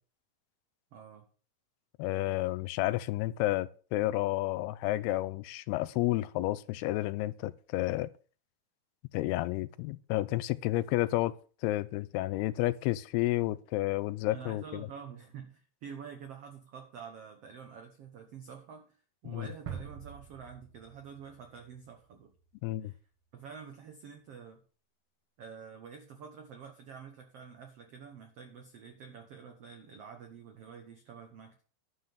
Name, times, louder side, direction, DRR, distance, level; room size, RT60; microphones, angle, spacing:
voice 1, 0.9-1.3 14.3-19.0 19.2-22.3 22.8-23.0 23.3-24.6 25.4-31.6, right 6 dB, 90° right, 1.3 m, -48 dB
voice 2, 2.0-8.1 9.1-11.3 11.6-14.9 19.3-19.5 22.6-22.9, left 17 dB, 85° left, 2.6 m, -31 dB
sound 1, 19.7-22.5, right 7 dB, 60° right, 1.5 m, -45 dB
11.5 x 5.8 x 6.8 m
omnidirectional pair, 4.5 m